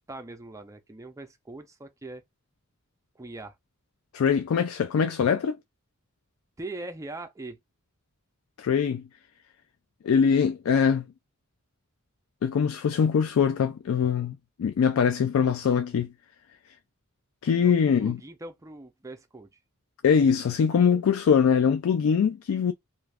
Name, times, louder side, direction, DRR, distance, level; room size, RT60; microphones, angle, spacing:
voice 1, 0.0-2.2 3.2-3.5 6.6-7.6 17.6-17.7 18.0-19.5, right 2 dB, 15° right, 0.4 m, -41 dB
voice 2, 4.1-5.6 8.6-9.1 10.0-11.0 12.4-16.1 17.4-18.2 20.0-22.7, left 6 dB, 70° left, 0.3 m, -23 dB
2.5 x 2.4 x 3.2 m
head